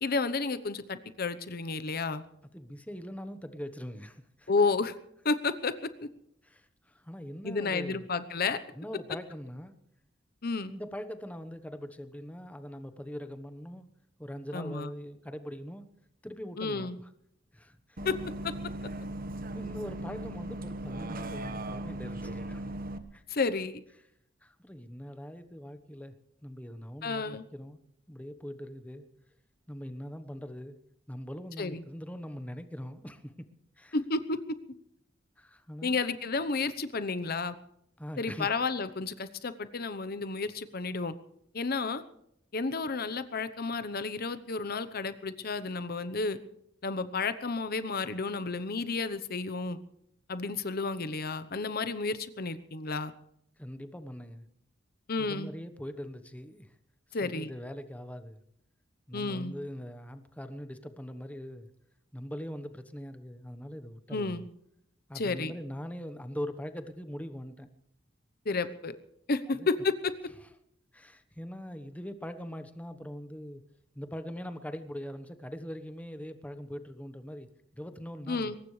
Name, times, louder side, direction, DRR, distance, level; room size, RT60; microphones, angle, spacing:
voice 1, 0.0-2.2 4.5-4.9 5.2-5.7 7.4-8.6 10.4-10.7 14.5-14.9 16.6-16.9 18.0-18.1 18.4-18.5 23.3-23.8 27.0-27.4 31.6-31.8 33.9-34.4 35.8-37.6 38.2-41.1 41.5-42.0 42.5-46.4 46.8-49.8 50.3-53.1 55.1-55.5 57.1-57.5 59.1-59.5 64.1-64.4 65.1-65.5 68.5-69.0 69.3-70.1 78.3-78.6, left 4 dB, 55° left, 0.9 m, -31 dB
voice 2, 2.5-4.5 6.4-8.1 8.8-9.7 10.7-13.9 14.2-15.8 16.2-17.1 17.5-18.0 19.5-22.6 23.1-23.2 24.4-26.1 26.4-27.8 28.1-29.1 29.7-30.8 31.1-33.5 33.8-34.0 35.4-36.0 38.0-38.5 53.6-54.5 55.2-56.7 57.1-58.4 59.1-61.7 62.1-64.4 65.1-67.7 68.5-68.7 69.5-69.7 70.9-73.6 73.9-78.5, equal, 10° left, 1.1 m, -42 dB
Bus, 18.0-23.0, right 1 dB, 50° right, 1.3 m, -38 dB
22.5 x 19.0 x 3.3 m
head